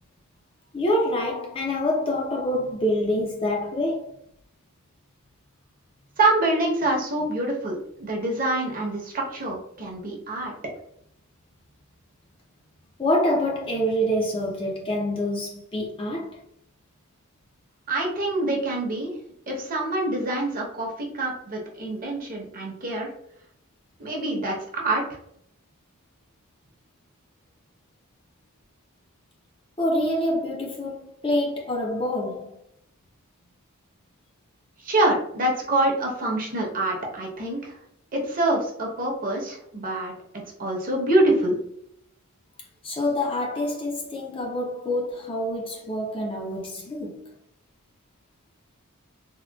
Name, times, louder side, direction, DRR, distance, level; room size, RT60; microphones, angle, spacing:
voice 1, 0.7-4.1 13.0-16.4 29.8-32.6 42.8-47.2, left 1 dB, 25° left, 0.4 m, -26 dB
voice 2, 6.2-10.5 17.9-19.1 19.5-23.1 24.0-25.0 34.8-37.7 38.1-41.5, right 2 dB, 40° right, 0.8 m, -25 dB
3.6 x 2.2 x 2.2 m
head